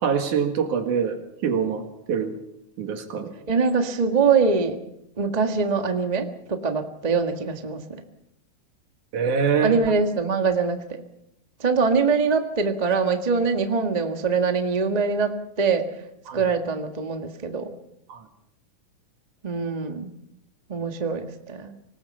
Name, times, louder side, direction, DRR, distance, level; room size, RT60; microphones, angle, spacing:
voice 1, 0.0-2.3 2.8-3.3 9.1-9.8 16.3-16.4 18.1-18.2, right 6 dB, 65° right, 6 dB, 3.3 m, -24 dB
voice 2, 3.5-4.8 5.2-7.8 9.6-11.0 11.6-15.9 16.3-17.7 19.4-20.1 20.7-21.7, right 5 dB, 30° right, 5 dB, 0.7 m, -23 dB
26.0 x 19.0 x 5.6 m, 0.78 s
omnidirectional pair, 3.9 m